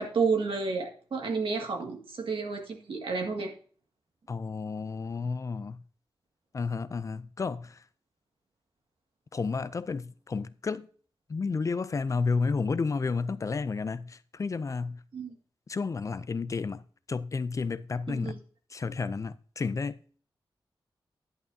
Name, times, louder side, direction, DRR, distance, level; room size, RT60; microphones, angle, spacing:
voice 1, 0.0-3.5 15.1-15.4 18.1-18.4, right 4 dB, 85° right, 1.9 m, -31 dB
voice 2, 4.3-5.8 6.5-7.8 9.3-10.9 11.3-15.0 15.7-16.8 17.1-18.4 18.7-20.0, left 4 dB, 40° left, 0.4 m, -31 dB
10.5 x 9.0 x 2.7 m
wide cardioid pair, 175°, 9 cm